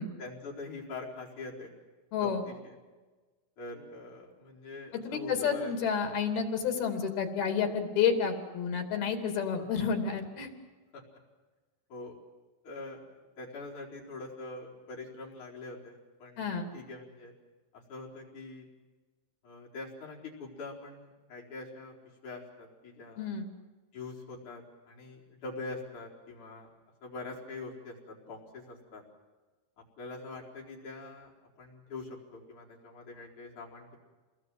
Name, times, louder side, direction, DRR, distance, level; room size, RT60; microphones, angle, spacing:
voice 1, 0.2-1.7 2.2-2.8 3.6-5.8 10.9-11.0 11.9-12.2 12.6-13.0 13.4-17.3 17.7-18.7 19.4-22.0 22.2-23.3 23.9-26.7 27.0-29.0 30.0-31.3 31.6-34.0, left 3 dB, 50° left, -2 dB, 5.6 m, -44 dB
voice 2, 2.1-2.4 4.9-10.5 16.4-16.7 23.2-23.5, left 6 dB, 75° left, 5 dB, 4.6 m, -30 dB
28.5 x 21.0 x 7.8 m, 1.3 s
omnidirectional pair, 4.4 m